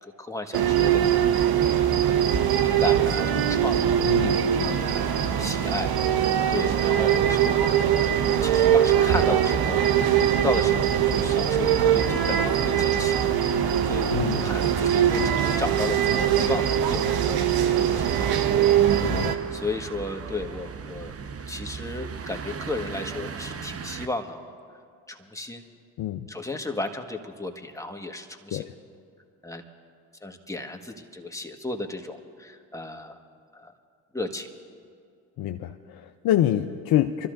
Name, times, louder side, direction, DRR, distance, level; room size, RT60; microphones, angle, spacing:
voice 1, 0.2-1.6 2.0-7.6 8.1-9.8 10.3-14.1 14.3-21.1 21.5-24.5 25.1-25.7 26.3-28.6 29.4-29.6 30.2-33.1 33.5-33.7 34.1-34.5, left 2 dB, 5° left, 3 dB, 1.5 m, -35 dB
sound 1, 0.5-19.4, right 9 dB, 60° right, 1.0 m, -22 dB
voice 2, 4.0-4.8 14.1-14.5 19.0-19.3 26.0-26.3 28.5-28.7 35.4-37.3, left 12 dB, 55° left, 6 dB, 0.6 m, -26 dB
sound 2, 6.9-24.1, right 6 dB, 35° right, 0.9 m, -39 dB
27.0 x 13.5 x 2.6 m, 2.3 s
hypercardioid pair, 50°, 42 cm